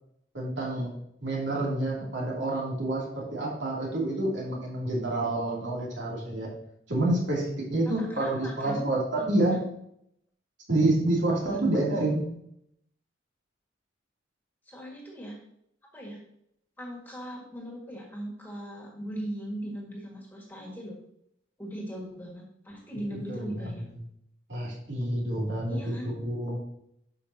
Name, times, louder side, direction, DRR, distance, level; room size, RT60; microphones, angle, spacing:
voice 1, 0.3-0.9 1.2-6.5 6.9-9.6 10.7-12.3 23.1-23.7 24.5-26.6, right 2 dB, 65° right, -4 dB, 2.8 m, -28 dB
voice 2, 8.0-8.9 9.2-9.3 11.5-12.0 14.7-15.4 15.9-16.2 16.8-21.0 21.6-23.8 25.7-26.1, equal, 10° left, -2 dB, 1.8 m, -39 dB
12.5 x 5.2 x 2.8 m, 0.73 s
head